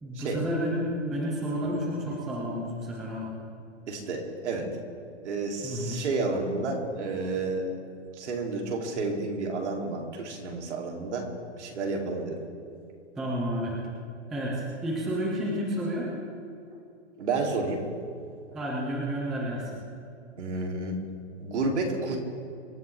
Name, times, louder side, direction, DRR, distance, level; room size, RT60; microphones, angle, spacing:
voice 1, 0.0-3.3 5.6-6.0 13.2-13.8 14.3-16.1 18.5-19.8, equal, ahead, -3 dB, 0.3 m, -31 dB
voice 2, 3.9-4.7 5.2-7.7 8.2-11.2 11.6-12.4 17.2-17.8 20.4-21.0 21.4-22.2, right 3 dB, 75° right, 0 dB, 3.4 m, -30 dB
25.0 x 12.5 x 3.6 m, 2.6 s
hypercardioid pair, 150°, 35 cm